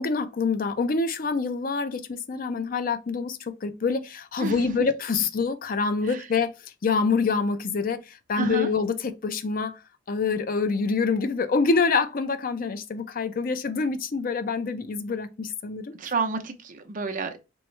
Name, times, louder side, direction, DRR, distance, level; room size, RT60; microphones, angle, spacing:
voice 1, 0.0-6.5 6.8-9.8 10.1-15.9, left 4 dB, 45° left, 0.4 m, -26 dB
voice 2, 4.4-4.7 6.0-6.3 8.4-8.7 16.0-17.4, right 4 dB, 40° right, 0.6 m, -30 dB
3.5 x 3.0 x 3.1 m
head